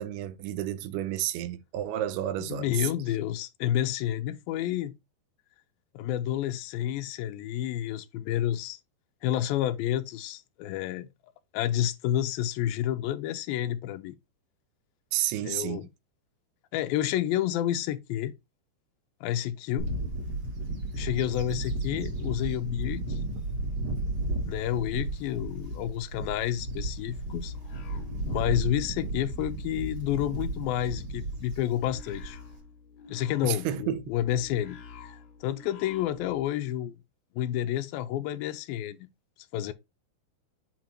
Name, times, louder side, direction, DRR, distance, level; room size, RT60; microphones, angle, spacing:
voice 1, 0.0-2.9 15.1-15.9 33.4-34.0, right 12 dB, 80° right, 2.6 m, -31 dB
voice 2, 2.4-4.9 5.9-8.8 9.2-11.1 11.5-14.2 15.4-15.9 16.7-18.3 19.2-19.9 20.9-23.2 24.5-27.5 28.2-32.4 33.1-36.9 37.4-39.1 39.5-39.7, left 12 dB, 85° left, 2.1 m, -30 dB
Bird / Wind, 19.8-32.6, right 1 dB, 65° right, 1.0 m, -34 dB
sound 1, 27.2-28.7 29.0-36.5, left 5 dB, 60° left, 3.0 m, -49 dB
8.9 x 3.0 x 4.4 m
omnidirectional pair, 4.8 m